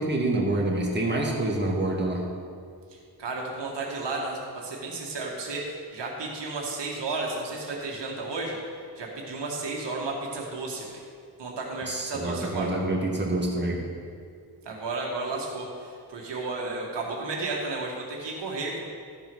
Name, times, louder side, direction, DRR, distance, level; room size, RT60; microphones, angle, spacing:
voice 1, 0.0-2.2 11.9-13.8, right 2 dB, 25° right, -1 dB, 2.0 m, -27 dB
voice 2, 3.2-8.6 9.0-10.9 11.4-12.7 14.7-18.8, right 3 dB, 80° right, -2 dB, 2.1 m, -33 dB
13.0 x 4.9 x 6.3 m, 2.2 s
cardioid pair, 85°, 41 cm